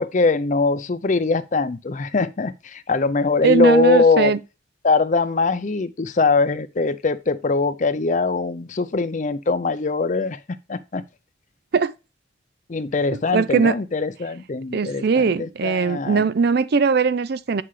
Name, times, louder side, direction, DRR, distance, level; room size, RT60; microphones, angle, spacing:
voice 1, 0.0-4.3 4.8-11.0 12.7-16.3, left 4 dB, 40° left, 0.5 m, -22 dB
voice 2, 3.4-4.4 11.7-11.9 13.3-13.7 14.7-17.6, right 5 dB, 55° right, 0.5 m, -19 dB
7.9 x 5.6 x 3.2 m
head